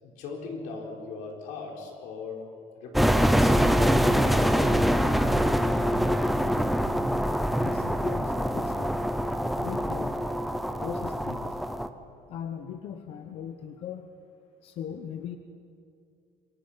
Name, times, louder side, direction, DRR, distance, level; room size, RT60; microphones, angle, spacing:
voice 1, 0.0-5.0, left 4 dB, 85° left, 1 dB, 4.4 m, -40 dB
sound 1, 2.9-11.9, equal, ahead, 0.7 m, -24 dB
voice 2, 7.6-9.0 9.5-10.2 10.8-11.6 12.3-14.1 14.6-15.4, left 8 dB, 50° left, 7 dB, 1.0 m, -39 dB
27.0 x 22.5 x 5.8 m, 2.4 s
cardioid pair, 175°, 13 cm